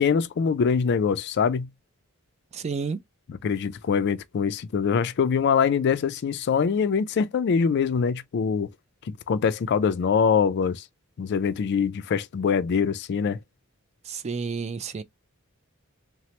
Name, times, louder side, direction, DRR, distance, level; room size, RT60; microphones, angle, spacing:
voice 1, 0.0-1.7 3.3-8.7 9.1-10.8 11.2-13.4, left 6 dB, 50° left, 0.3 m, -24 dB
voice 2, 2.5-3.0 14.1-15.0, right 5 dB, 30° right, 0.3 m, -30 dB
3.1 x 2.0 x 2.8 m
head